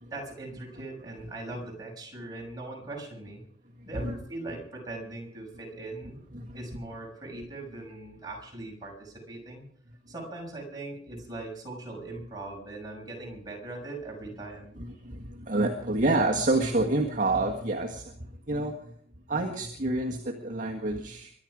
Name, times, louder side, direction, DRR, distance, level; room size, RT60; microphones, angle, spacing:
voice 1, 0.1-3.4 3.8-9.6 10.1-14.8, right 2 dB, 20° right, -2 dB, 6.5 m, -40 dB
voice 2, 1.2-1.6 3.8-4.1 6.3-6.6 14.8-18.9 19.3-21.3, right 2 dB, 45° right, 0 dB, 1.6 m, -29 dB
23.5 x 11.0 x 5.0 m, 0.62 s
head